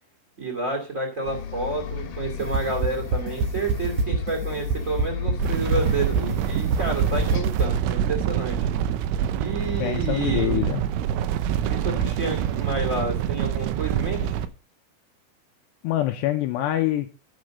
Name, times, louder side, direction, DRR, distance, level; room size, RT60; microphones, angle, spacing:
voice 1, 0.4-8.6 9.3-10.6 11.7-14.3, right 3 dB, 25° right, -1 dB, 1.7 m, -30 dB
Bus, 1.2-7.4, left 8 dB, 60° left, 3.1 m, -33 dB
sound 1, 2.4-7.8, right 3 dB, 75° right, 2.0 m, -24 dB
sound 2, 5.4-14.5, right 10 dB, 90° right, 3.3 m, -26 dB
voice 2, 9.8-10.8 15.8-17.2, left 14 dB, 80° left, 5 dB, 2.6 m, -25 dB
11.5 x 5.2 x 6.5 m, 0.34 s
omnidirectional pair, 5.5 m